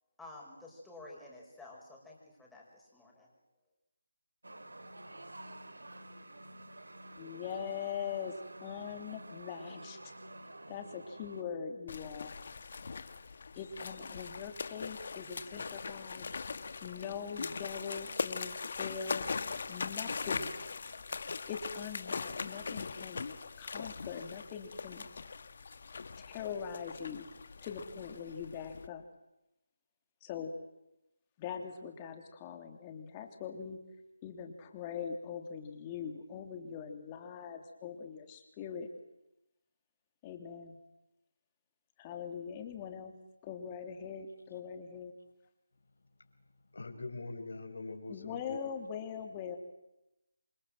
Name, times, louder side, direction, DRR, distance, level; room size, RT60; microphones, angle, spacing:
voice 1, 0.2-3.3, left 2 dB, 5° left, -3 dB, 5.8 m, -51 dB
sound 1, 4.4-11.4, right 1 dB, 85° right, 3.3 m, -49 dB
voice 2, 7.2-8.3 8.6-10.0 10.7-12.3 13.5-16.3 16.8-19.3 19.7-20.6 21.5-23.2 23.6-25.1 26.2-27.3 27.6-29.0 30.2-30.5 31.4-33.8 34.2-38.9 40.2-40.8 42.0-43.1 43.4-45.1 48.1-49.6, left 7 dB, 20° left, 5 dB, 3.2 m, -42 dB
sound 2, 11.9-28.9, left 4 dB, 50° left, 1.8 m, -41 dB
voice 3, 46.7-48.6, left 3 dB, 65° left, 7 dB, 5.3 m, -42 dB
28.5 x 24.5 x 7.8 m, 0.89 s
figure-of-eight pair, 160°, 0 cm